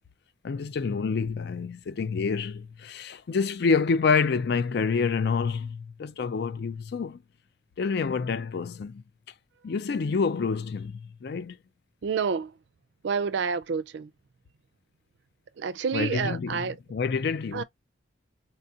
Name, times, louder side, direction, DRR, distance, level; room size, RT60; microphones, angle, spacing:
voice 1, 0.4-7.2 7.8-9.0 9.6-11.6 15.9-16.6 16.9-17.6, left 5 dB, 60° left, 0.4 m, -27 dB
voice 2, 12.0-12.6 13.0-14.1 15.6-16.8 17.5-17.6, right 6 dB, 65° right, 0.4 m, -29 dB
4.3 x 2.4 x 2.7 m
head